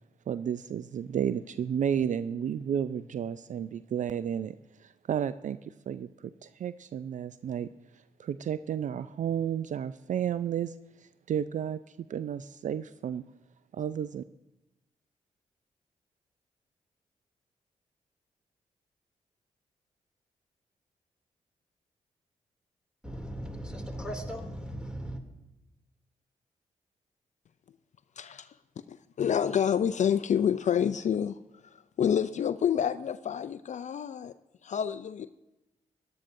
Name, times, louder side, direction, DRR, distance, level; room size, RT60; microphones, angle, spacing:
voice 1, 0.3-4.5 4.8-5.6 5.9-7.7 8.2-10.7 11.0-11.8 12.1-13.2 13.7-14.2, right 9 dB, 55° right, 0.4 m, -32 dB
voice 2, 23.0-25.2, equal, 5° right, 2.7 m, -37 dB
voice 3, 28.2-28.5 28.9-34.3 34.6-35.3, left 8 dB, 50° left, 0.4 m, -28 dB
17.0 x 11.5 x 2.6 m
supercardioid pair, 40°, 15 cm